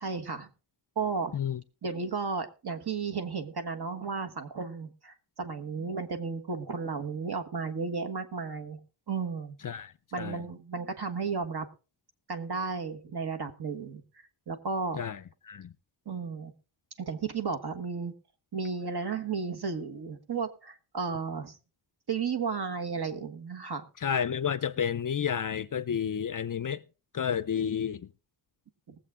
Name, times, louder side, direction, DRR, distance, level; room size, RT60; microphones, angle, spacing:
voice 1, 0.0-0.5 0.9-1.3 1.8-8.8 9.1-9.6 10.1-11.6 12.3-14.0 14.5-15.0 16.0-16.5 17.0-18.1 18.5-21.6 22.1-23.9 28.9-29.0, right 5 dB, 55° right, 1.5 m, -33 dB
voice 2, 9.6-10.4 14.9-15.2 15.4-15.7 24.0-26.8 27.1-28.1, left 8 dB, 45° left, 0.5 m, -31 dB
20.0 x 7.5 x 3.6 m
wide cardioid pair, 125°, 46 cm